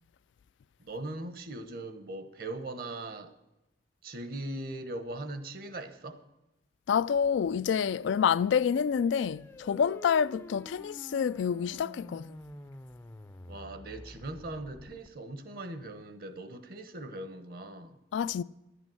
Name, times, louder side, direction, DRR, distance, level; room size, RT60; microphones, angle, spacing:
voice 1, 0.8-3.3 4.0-6.2 13.5-18.0, right 2 dB, 50° right, 1.1 m, -40 dB
voice 2, 6.9-12.4 18.1-18.4, left 7 dB, 80° left, 0.3 m, -28 dB
sound 1, 8.2-15.1, left 1 dB, 15° left, 0.5 m, -49 dB
11.0 x 8.3 x 7.7 m
head